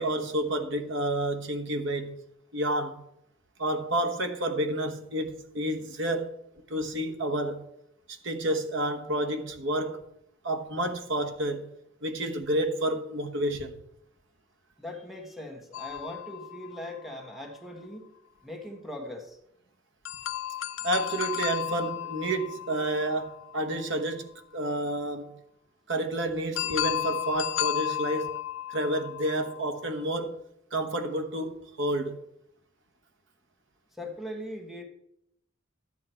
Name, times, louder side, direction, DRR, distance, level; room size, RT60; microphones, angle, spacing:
voice 1, 0.0-2.2 2.5-3.0 3.6-6.4 6.7-7.7 8.1-10.0 10.4-11.7 12.0-13.8 20.8-25.4 25.9-28.4 28.7-30.4 30.7-32.2, right 1 dB, 65° right, 1.2 m, -30 dB
voice 2, 14.8-18.1 18.4-19.4 34.0-34.8, left 1 dB, ahead, 1.4 m, -40 dB
sound 1, 15.7-17.5 20.1-24.0 26.6-30.0, left 13 dB, 65° left, 0.4 m, -34 dB
12.0 x 8.6 x 4.5 m
head